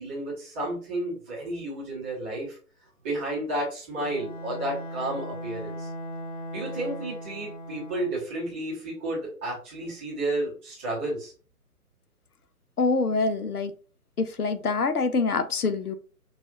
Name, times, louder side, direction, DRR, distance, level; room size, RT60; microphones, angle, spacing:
voice 1, 0.0-2.5 3.0-5.9 6.5-11.3, right 1 dB, 10° right, -8 dB, 0.7 m, -32 dB
Bowed string instrument, 4.0-8.3, equal, 55° left, 1.4 m, -38 dB
voice 2, 12.8-13.7 14.2-15.9, left 4 dB, 75° left, 10 dB, 0.7 m, -25 dB
5.9 x 2.4 x 2.6 m, 0.39 s
figure-of-eight pair, 135°, 46 cm